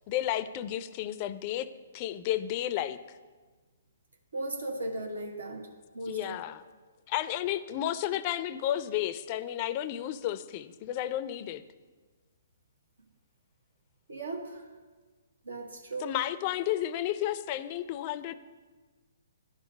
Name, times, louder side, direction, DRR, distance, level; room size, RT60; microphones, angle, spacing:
voice 1, 0.1-1.7 1.9-3.0 6.1-6.6 7.1-11.6 16.0-18.3, left 12 dB, 35° left, 14 dB, 0.4 m, -32 dB
voice 2, 4.3-5.7 5.9-6.3 14.1-14.7 15.4-16.2, right 2 dB, 85° right, 2 dB, 1.2 m, -37 dB
11.0 x 3.8 x 5.2 m, 1.4 s
hypercardioid pair, 135°, 0 cm